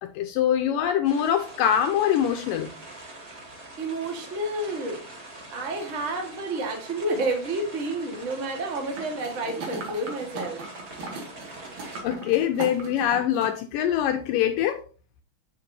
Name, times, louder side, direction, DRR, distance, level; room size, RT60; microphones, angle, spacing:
voice 1, 0.0-2.7 12.0-14.8, left 10 dB, 80° left, 7 dB, 2.0 m, -24 dB
sound 1, 1.0-12.0, right 2 dB, 30° right, 2.0 m, -44 dB
voice 2, 3.8-5.0 5.5-10.6, right 2 dB, 85° right, 1 dB, 0.6 m, -30 dB
sound 2, 8.9-13.6 14.0-14.1, right 3 dB, 55° right, 3.2 m, -38 dB
8.6 x 8.2 x 2.7 m, 0.37 s
omnidirectional pair, 4.5 m